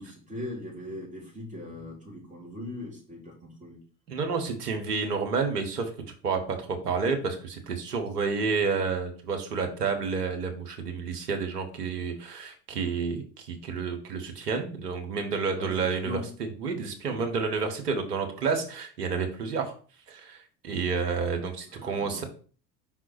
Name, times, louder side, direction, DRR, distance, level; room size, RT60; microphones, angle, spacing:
voice 1, 0.0-3.8 15.6-16.2 17.0-17.2 21.7-22.3, left 1 dB, 15° right, -3 dB, 3.3 m, -40 dB
voice 2, 4.1-5.9 6.2-19.7 20.1-22.2, right 5 dB, 70° right, 4 dB, 1.4 m, -30 dB
5.1 x 4.1 x 4.5 m, 0.40 s
figure-of-eight pair, 65°, 49 cm